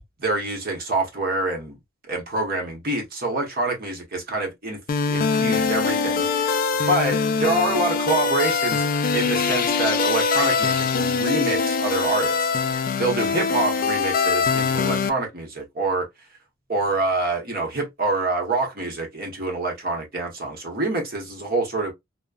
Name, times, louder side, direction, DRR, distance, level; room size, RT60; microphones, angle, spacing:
voice 1, 0.2-1.8 2.1-4.8 5.1-16.1 16.7-21.9, right 2 dB, 50° right, 1.0 m, -26 dB
sound 1, 4.9-15.1, left 5 dB, 45° left, 0.3 m, -23 dB
3.0 x 2.1 x 2.3 m
head